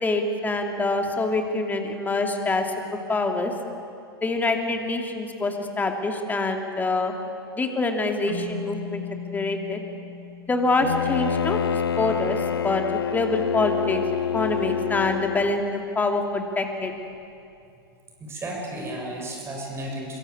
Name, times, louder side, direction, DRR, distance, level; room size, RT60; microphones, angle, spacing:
voice 1, 0.0-2.7 3.1-3.5 4.2-7.1 7.5-9.0 9.3-9.8 10.5-11.6 12.0-12.8 13.1-14.0 14.3-16.9, left 3 dB, 15° left, 3 dB, 2.8 m, -25 dB
Keyboard (musical), 8.3-11.5, left 4 dB, 70° right, 2.9 m, -38 dB
Bowed string instrument, 10.8-15.7, left 8 dB, 70° left, 0.6 m, -27 dB
voice 2, 18.2-20.2, right 1 dB, 20° right, 0 dB, 6.7 m, -33 dB
25.5 x 23.5 x 8.6 m, 2.5 s
figure-of-eight pair, 90°, 13 cm